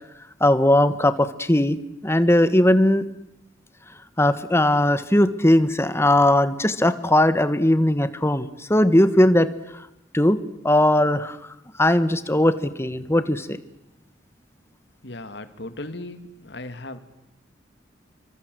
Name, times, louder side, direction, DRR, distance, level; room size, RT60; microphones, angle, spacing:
voice 1, 0.4-3.0 4.2-9.5 10.1-10.4 10.6-11.4 11.8-13.6, left 1 dB, 15° left, 13 dB, 1.4 m, -19 dB
voice 2, 15.0-17.0, left 2 dB, 65° left, 10 dB, 2.4 m, -37 dB
29.5 x 24.5 x 7.9 m, 0.83 s
head